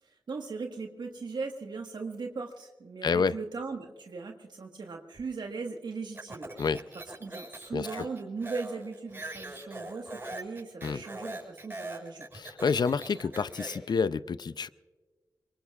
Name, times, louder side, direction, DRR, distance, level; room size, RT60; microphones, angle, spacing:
voice 1, 0.0-6.7 6.9-12.3, right 4 dB, 70° right, 3 dB, 1.6 m, -39 dB
voice 2, 3.0-3.3 6.6-6.8 7.7-8.1 10.8-11.0 12.3-14.7, left 5 dB, 60° left, 16 dB, 0.5 m, -28 dB
Speech, 6.1-13.9, right 2 dB, 30° right, 6.8 m, -42 dB
24.5 x 22.5 x 2.4 m, 1.3 s
cardioid pair, 45°, 8 cm